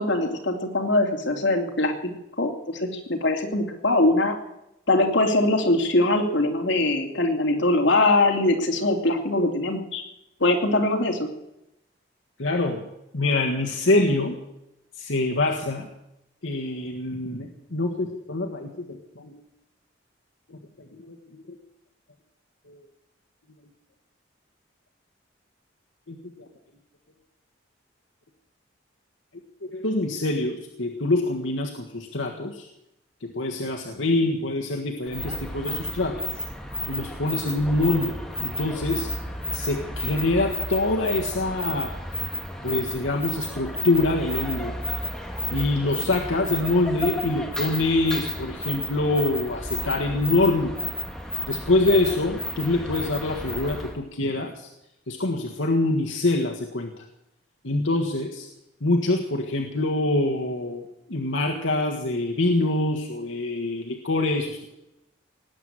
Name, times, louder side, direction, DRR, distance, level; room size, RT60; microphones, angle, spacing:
voice 1, 0.0-1.9 2.4-4.4 4.9-10.0 10.4-11.3, left 2 dB, 70° left, 3 dB, 2.6 m, -22 dB
voice 2, 12.4-12.8 13.1-14.4 15.0-15.9 16.4-19.3 20.9-21.4 22.7-22.8 26.1-26.5 29.7-32.7 33.2-36.4 36.9-39.1 39.5-41.9 42.6-44.7 45.5-50.7 51.5-54.7 55.1-56.9 57.6-58.5 58.8-60.8 61.1-64.6, left 2 dB, 90° left, 1 dB, 1.6 m, -25 dB
sound 1, 35.1-54.0, left 1 dB, 5° left, 1.6 m, -32 dB
19.0 x 9.2 x 8.0 m, 0.87 s
head